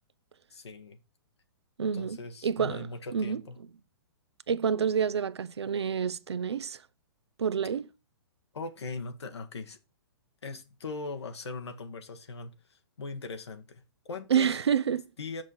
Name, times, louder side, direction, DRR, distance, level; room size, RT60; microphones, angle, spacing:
voice 1, 0.5-1.0 1.9-3.6 8.5-9.8 10.4-14.6 15.2-15.4, left 3 dB, 85° left, 1.3 m, -40 dB
voice 2, 1.8-3.4 4.5-6.8 7.4-7.9 14.3-15.0, right 7 dB, 85° right, 0.6 m, -28 dB
6.0 x 5.8 x 4.2 m
hypercardioid pair, 135°, 14 cm